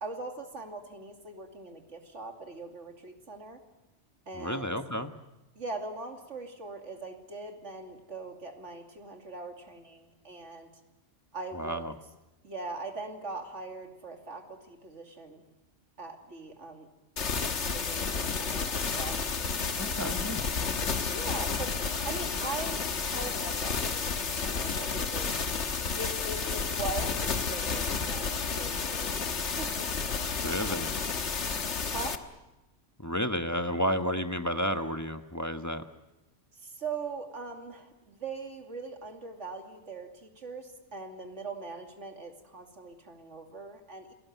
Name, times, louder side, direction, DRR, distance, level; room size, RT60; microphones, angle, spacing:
voice 1, 0.0-3.6 4.3-4.7 5.6-10.7 11.3-11.8 12.4-15.4 16.0-16.9 17.6-19.2 20.0-20.3 21.1-25.3 26.0-29.9 30.6-30.8 31.9-32.2 36.5-44.1, right 3 dB, 75° right, 4 dB, 2.9 m, -41 dB
voice 2, 4.3-5.1 11.5-11.9 19.7-20.4 30.4-30.9 33.0-35.8, equal, 15° left, 7 dB, 1.2 m, -31 dB
sound 1, 17.2-32.2, left 5 dB, 70° left, 1.7 m, -31 dB
28.5 x 18.0 x 9.4 m, 1.0 s
omnidirectional pair, 1.2 m